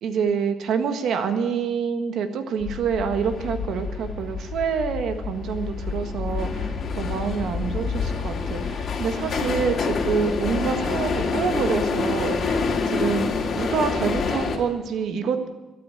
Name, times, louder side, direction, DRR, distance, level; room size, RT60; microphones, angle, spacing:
voice 1, 0.0-12.6 12.9-13.3 13.5-15.5, right 6 dB, 75° right, 7 dB, 1.6 m, -26 dB
sound 1, 2.6-14.6, left 4 dB, 55° left, 2.4 m, -27 dB
13.0 x 9.3 x 9.8 m, 1.1 s
cardioid pair, 90°, 0 cm